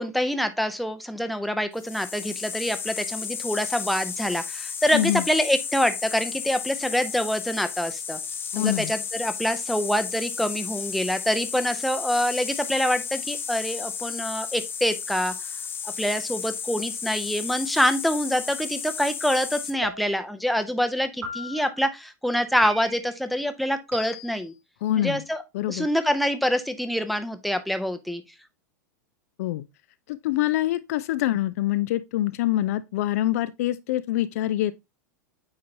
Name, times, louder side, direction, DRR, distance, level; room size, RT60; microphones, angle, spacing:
voice 1, 0.0-8.2 8.6-15.3 16.0-24.5 25.0-25.4 25.7-28.2, equal, ahead, 0.7 m, -26 dB
sound 1, 1.7-19.7, left 6 dB, 20° left, 1.0 m, -33 dB
voice 2, 4.9-5.2 8.5-8.9 24.8-25.2 25.5-25.9 29.4-29.7 30.1-34.7, left 14 dB, 55° left, 0.4 m, -25 dB
sound 2, 19.8-20.4 21.2-21.8 22.6-23.2 23.9-24.5, right 1 dB, 70° right, 3.4 m, -38 dB
8.7 x 3.9 x 2.8 m
figure-of-eight pair, 90°, 10 cm